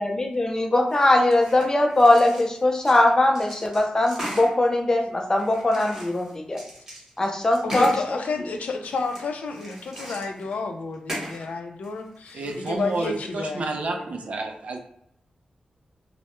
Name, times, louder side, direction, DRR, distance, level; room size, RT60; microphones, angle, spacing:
voice 1, 0.0-6.6 7.2-8.2, left 1 dB, 25° left, 1 dB, 0.5 m, -21 dB
sound 1, 0.9-3.1 3.4-4.5 5.4-8.1 8.8-10.6 10.9-11.5 11.8-13.1, equal, 25° right, 0.9 m, -38 dB
voice 2, 7.6-14.0, left 4 dB, 80° left, 4 dB, 0.4 m, -31 dB
voice 3, 12.3-14.8, right 2 dB, 60° right, 4 dB, 0.4 m, -30 dB
2.1 x 2.0 x 2.9 m, 0.70 s
wide cardioid pair, 110°, 3 cm